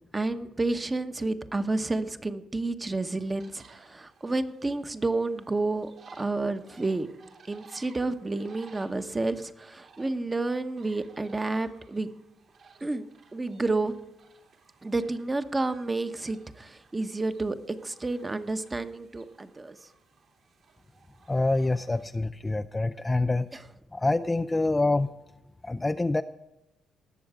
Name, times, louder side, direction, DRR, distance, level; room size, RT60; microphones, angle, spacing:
voice 1, 0.1-5.9 6.2-7.1 7.5-12.1 12.8-13.1 13.3-13.9 14.8-19.9 23.5-23.6, right 2 dB, 20° right, 9 dB, 1.0 m, -30 dB
sound 1, 3.2-22.1, right 5 dB, 60° right, 2.8 m, -57 dB
voice 2, 21.3-23.5 23.9-25.1 25.6-26.2, left 2 dB, 15° left, 8 dB, 0.4 m, -26 dB
19.0 x 7.1 x 5.0 m, 0.95 s
cardioid pair, 90°, 0 cm